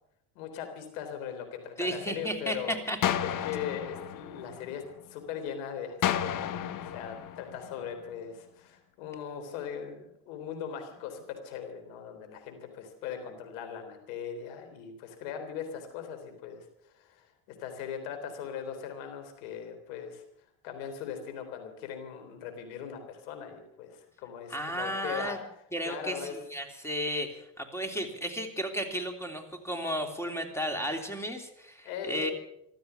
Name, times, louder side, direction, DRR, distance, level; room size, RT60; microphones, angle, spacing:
voice 1, 0.4-2.8 3.2-4.8 5.1-20.2 20.6-25.4 25.8-26.3 31.8-32.3, left 8 dB, 85° left, 6 dB, 3.8 m, -39 dB
voice 2, 1.8-3.0 24.5-25.4 25.7-32.3, equal, 5° left, 5 dB, 3.1 m, -34 dB
sound 1, 3.0-5.1 6.0-8.1, left 10 dB, 50° left, 1.2 m, -32 dB
15.0 x 13.0 x 7.0 m, 0.76 s
supercardioid pair, 90°, 40 cm